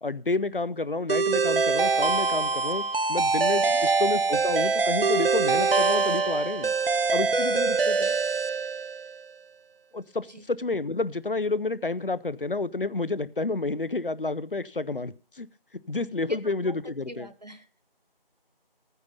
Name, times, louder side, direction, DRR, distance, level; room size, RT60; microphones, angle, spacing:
voice 1, 0.0-6.7 7.1-8.1 9.9-15.5 15.9-17.3, left 3 dB, 65° left, 18 dB, 0.8 m, -30 dB
sound 1, 1.1-9.2, right 4 dB, 70° right, 0.7 m, -24 dB
voice 2, 7.4-8.1 10.3-10.4 16.1-16.4 16.6-16.8 17.1-17.8, right 1 dB, 45° right, 11 dB, 1.2 m, -45 dB
13.5 x 9.5 x 5.4 m, 0.37 s
figure-of-eight pair, 175°, 29 cm